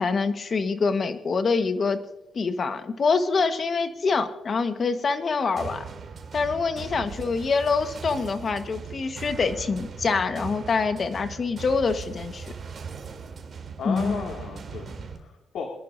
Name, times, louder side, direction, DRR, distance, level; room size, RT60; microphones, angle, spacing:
voice 1, 0.0-2.0 2.3-5.8 6.3-12.5 13.8-14.2, left 4 dB, 45° left, 9 dB, 1.3 m, -25 dB
sound 1, 5.6-15.2, right 5 dB, 45° right, 3.0 m, -39 dB
voice 2, 6.8-7.3 13.8-15.7, left 5 dB, 70° left, 1 dB, 2.2 m, -35 dB
25.0 x 11.0 x 2.6 m, 0.97 s
cardioid pair, 90°, 0 cm